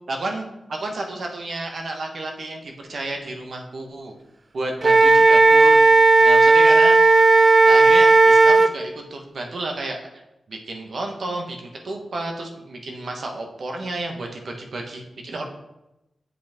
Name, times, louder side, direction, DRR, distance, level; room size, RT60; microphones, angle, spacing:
voice 1, 0.1-4.1 4.5-5.8 6.2-7.0 7.6-10.0 10.5-15.5, right 2 dB, 65° right, 2 dB, 1.1 m, -31 dB
Wind instrument woodwind instrument, 4.8-8.7, right 3 dB, 40° right, 0.4 m, -13 dB
8.3 x 5.2 x 3.5 m, 0.93 s
cardioid pair, 75°, 0 cm